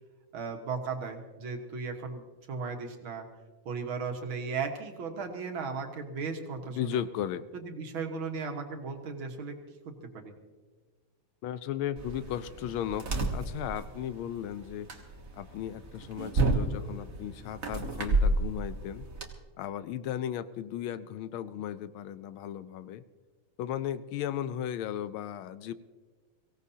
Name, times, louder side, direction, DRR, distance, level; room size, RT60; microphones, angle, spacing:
voice 1, 0.3-3.3 3.7-7.0 7.5-9.6 9.9-10.3, right 5 dB, 70° right, 3 dB, 2.1 m, -36 dB
voice 2, 6.8-7.5 11.4-14.9 15.3-19.1 19.6-23.0 23.6-25.7, left 10 dB, 80° left, 14 dB, 1.4 m, -35 dB
sound 1, 12.0-19.3, right 2 dB, 45° right, 1.7 m, -32 dB
23.0 x 17.0 x 2.8 m, 1.4 s
omnidirectional pair, 2.3 m